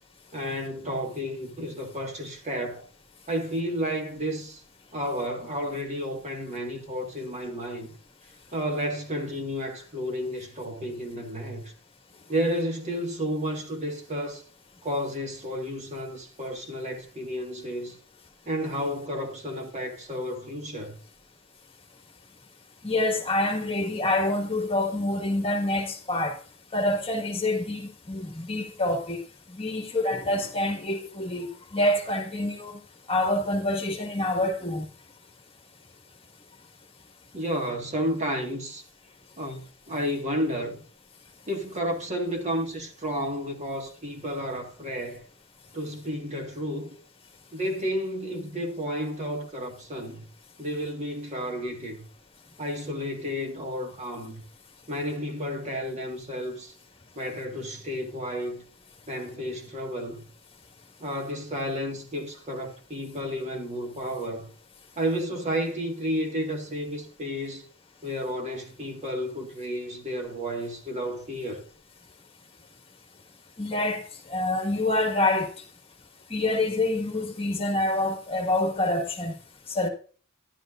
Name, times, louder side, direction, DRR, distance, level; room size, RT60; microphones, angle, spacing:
voice 1, 0.3-2.9 3.3-4.6 4.9-7.9 8.5-11.7 12.3-14.4 14.8-18.0 18.5-21.0 37.3-38.8 39.4-39.6 39.9-40.8 41.5-45.2 45.7-47.0 47.5-50.3 50.6-52.1 52.6-54.4 54.9-56.7 57.2-58.6 59.1-60.3 61.0-64.5 65.0-67.7 68.0-71.6, equal, 35° right, 1.7 m, -31 dB
voice 2, 22.8-26.4 26.7-29.2 29.6-32.8 33.1-34.9 73.6-74.0 74.3-75.5 76.3-79.3 79.7-79.9, left 1 dB, 25° left, 1.7 m, -26 dB
12.5 x 11.5 x 2.5 m
head